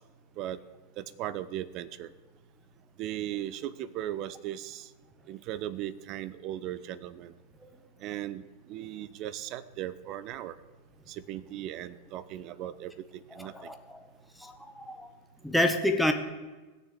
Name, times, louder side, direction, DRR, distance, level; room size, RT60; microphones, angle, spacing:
voice 1, 1.0-2.1 3.0-4.9 5.3-7.3 8.0-10.6 11.1-13.7, right 12 dB, 40° right, 16 dB, 0.7 m, -37 dB
voice 2, 13.3-14.0 14.4-15.1 15.4-16.1, left 1 dB, ahead, 4 dB, 1.4 m, -28 dB
16.5 x 7.0 x 8.1 m, 1.2 s
figure-of-eight pair, 90°, 0 cm